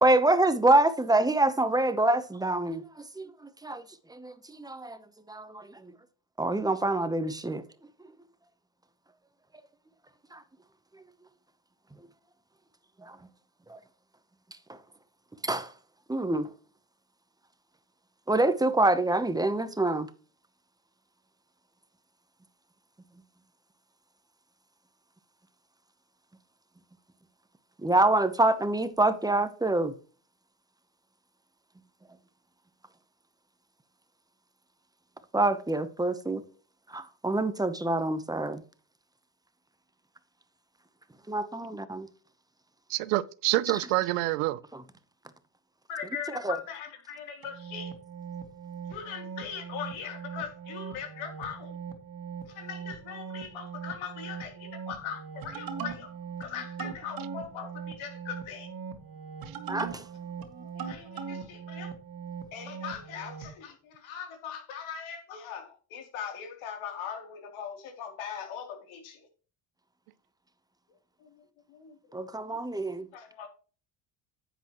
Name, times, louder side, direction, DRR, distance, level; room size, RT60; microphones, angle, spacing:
voice 1, 0.0-3.3 3.6-3.8 4.1-5.0 5.3-5.9 6.4-7.6 10.3-10.4 13.1-13.2 13.7-13.8 14.7-14.8 15.4-15.7 16.1-16.5 18.3-20.1 27.8-29.9 35.3-36.4 36.9-38.6 41.3-42.1 46.4-46.6 59.7-60.0 72.1-73.1, right 2 dB, 10° right, 0.9 m, -26 dB
voice 2, 42.9-44.6 59.5-59.6, right 18 dB, 90° right, 0.8 m, -27 dB
voice 3, 45.9-47.9 48.9-51.8 52.5-56.1 56.4-58.7 60.6-61.9 62.5-69.3 71.2-71.4 71.7-72.4 72.8-73.5, left 7 dB, 75° left, 3.3 m, -40 dB
sound 1, 47.4-63.5, right 6 dB, 45° right, 2.1 m, -40 dB
10.0 x 8.3 x 3.1 m
cardioid pair, 120°, 49 cm